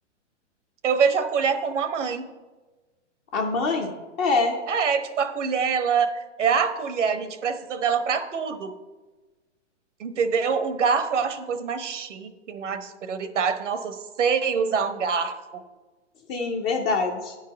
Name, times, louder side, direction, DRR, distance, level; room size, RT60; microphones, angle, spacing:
voice 1, 0.8-2.3 4.7-8.7 10.0-15.3, right 6 dB, 75° right, 9 dB, 1.0 m, -25 dB
voice 2, 3.3-4.6 16.3-17.4, left 3 dB, 15° left, 2 dB, 0.3 m, -25 dB
9.7 x 4.6 x 6.2 m, 1.2 s
hypercardioid pair, 120°, 36 cm